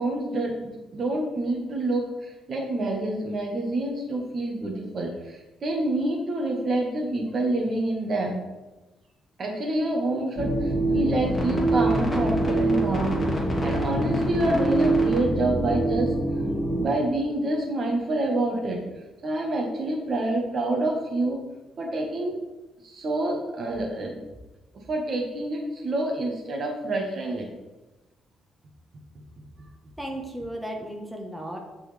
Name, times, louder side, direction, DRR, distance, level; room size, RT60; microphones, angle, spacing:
voice 1, 0.0-8.4 9.4-13.2 13.6-16.1 16.8-18.8 19.2-21.4 21.8-22.3 22.8-24.2 24.7-27.5, right 2 dB, 50° right, 1 dB, 1.8 m, -27 dB
sound 1, 10.4-16.8, right 2 dB, 20° left, 2.6 m, -24 dB
voice 2, 30.0-31.6, right 1 dB, 5° right, 0 dB, 1.5 m, -35 dB
13.5 x 4.7 x 3.5 m, 1.1 s
cardioid pair, 90°, 0 cm